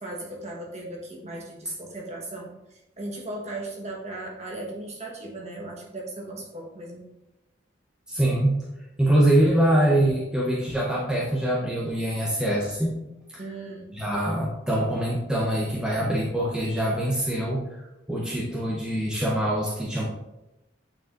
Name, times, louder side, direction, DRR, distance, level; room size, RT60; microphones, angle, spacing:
voice 1, 0.0-7.1 13.4-14.0, right 2 dB, 35° right, -2 dB, 1.4 m, -37 dB
voice 2, 8.1-8.6 9.0-12.9 13.3-13.4 13.9-20.0, right 1 dB, 5° right, -5 dB, 0.8 m, -24 dB
8.7 x 4.8 x 2.6 m, 0.96 s
head